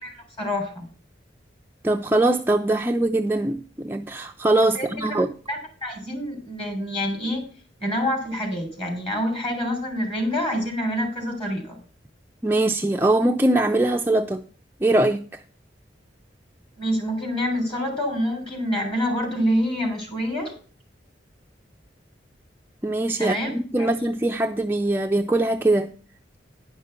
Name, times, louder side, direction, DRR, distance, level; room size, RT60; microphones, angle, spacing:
voice 1, 0.4-0.9 4.8-5.2 5.5-7.5 7.8-11.8 16.8-20.5 23.2-23.5 23.8-23.9, equal, 30° left, 3.6 m, -26 dB
voice 2, 1.8-5.3 12.4-14.5 14.8-15.4 22.8-25.9, right 2 dB, 10° right, 0.4 m, -22 dB
10.5 x 5.5 x 6.5 m
head